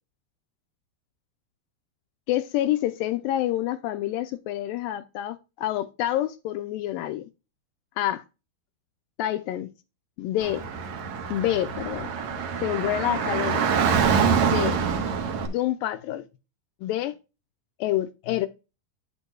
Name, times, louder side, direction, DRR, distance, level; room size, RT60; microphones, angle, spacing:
voice 1, 2.3-7.3 8.0-8.2 9.2-9.7 10.2-10.7 11.3-12.1 12.6-13.7 14.4-14.8 15.4-16.3 16.8-17.1 17.8-18.5, left 13 dB, 80° left, 2.1 m, -27 dB
Car / Traffic noise roadway noise, 10.4-15.5, right 6 dB, 60° right, 2.1 m, -25 dB
9.7 x 8.2 x 2.3 m
omnidirectional pair, 4.3 m